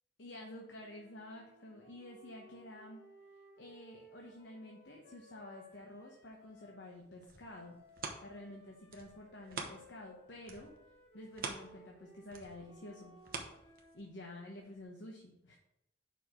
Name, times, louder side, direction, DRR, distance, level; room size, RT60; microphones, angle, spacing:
voice 1, 0.2-3.1 3.6-7.8 8.2-10.8 11.1-13.1 13.9-15.6, left 1 dB, 85° left, 0 dB, 1.0 m, -50 dB
sound 1, 0.8-6.8 7.4-14.1, equal, 60° left, 2.3 m, -60 dB
sound 2, 7.0-10.1 10.4-14.2 14.7-14.8, right 4 dB, 50° right, 0.9 m, -46 dB
5.4 x 4.5 x 6.2 m, 0.82 s
head